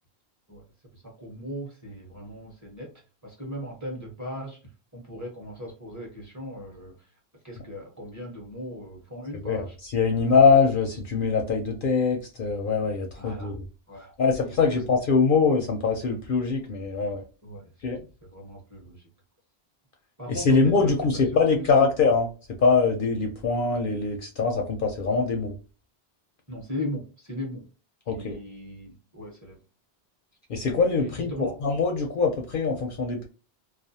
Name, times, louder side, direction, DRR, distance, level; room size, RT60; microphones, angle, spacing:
voice 1, 0.9-2.9 3.2-9.8 13.1-13.6 13.9-14.1 14.4-14.6 14.8-14.9 17.4-19.1 20.2-21.9 26.5-27.7 28.1-29.6 31.0-31.5, equal, 20° right, -2 dB, 0.8 m, -38 dB
voice 2, 9.4-13.5 14.2-17.2 17.8-18.0 20.3-22.3 22.6-25.5 28.1-28.4 30.5-31.3 31.6-33.3, left 4 dB, 60° left, 3 dB, 0.6 m, -23 dB
2.4 x 2.2 x 2.7 m, 0.34 s
omnidirectional pair, 1.1 m